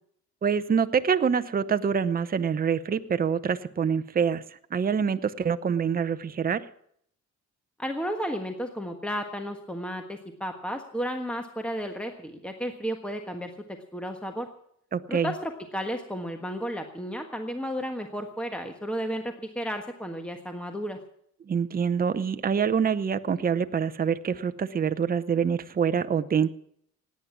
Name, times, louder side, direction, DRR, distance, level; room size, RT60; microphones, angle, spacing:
voice 1, 0.4-4.4 4.7-6.6 14.9-15.3 21.5-26.5, right 7 dB, 30° right, 11 dB, 0.7 m, -25 dB
voice 2, 7.8-13.5 13.9-14.5 15.1-21.0, equal, 5° left, 5 dB, 1.4 m, -33 dB
17.0 x 9.5 x 7.1 m, 0.68 s
cardioid pair, 90°, 30 cm